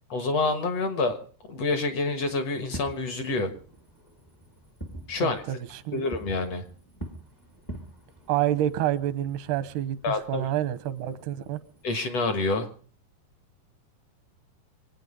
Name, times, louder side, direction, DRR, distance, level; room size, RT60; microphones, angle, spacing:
voice 1, 0.1-1.2 1.5-3.5 5.1-5.4 5.9-6.6 10.0-10.4 11.8-12.7, left 3 dB, 60° left, 1.9 m, -27 dB
Fireworks, 2.6-11.8, right 1 dB, 25° left, 0.5 m, -45 dB
voice 2, 5.2-6.0 8.3-11.6, right 12 dB, 85° right, 3.0 m, -28 dB
26.5 x 9.2 x 5.3 m
omnidirectional pair, 4.5 m